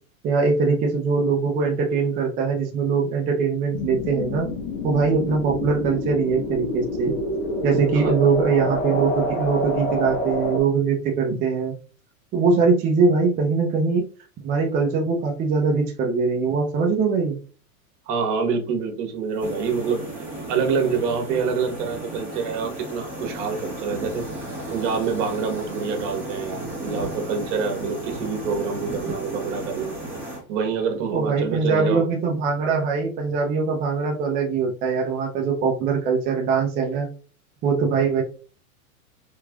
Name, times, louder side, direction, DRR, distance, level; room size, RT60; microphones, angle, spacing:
voice 1, 0.2-4.5 4.8-7.2 7.6-11.7 12.3-14.0 14.4-17.4 31.1-37.1 37.6-38.2, right 5 dB, 20° right, 0 dB, 0.4 m, -22 dB
sound 1, 3.7-10.6, left 1 dB, 60° left, 1.2 m, -27 dB
voice 2, 18.1-20.0 20.5-24.3 24.7-29.9 30.5-32.0, right 5 dB, 55° right, 4 dB, 1.3 m, -26 dB
sound 2, 19.4-30.4, right 1 dB, 5° right, 1.3 m, -34 dB
3.5 x 3.1 x 2.3 m, 0.38 s
hypercardioid pair, 125°, 44 cm